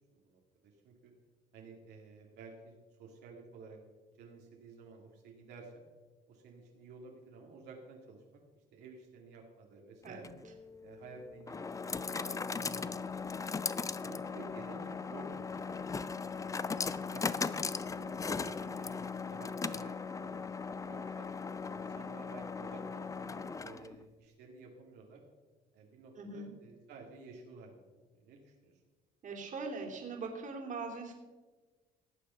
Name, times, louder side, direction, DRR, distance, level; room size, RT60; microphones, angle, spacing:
voice 1, 0.1-1.1 1.5-3.8 4.2-5.8 6.3-8.2 8.7-10.3 10.8-13.0 14.0-16.6 17.0-21.3 21.6-25.2 25.7-28.7, right 3 dB, 80° right, 0 dB, 2.2 m, -53 dB
sound 1, 10.1-24.0, left 5 dB, 20° left, 0.5 m, -38 dB
voice 2, 26.2-26.5 29.2-31.1, right 4 dB, 50° right, 2 dB, 2.9 m, -41 dB
18.0 x 7.0 x 5.6 m, 1.3 s
cardioid pair, 110°, 17 cm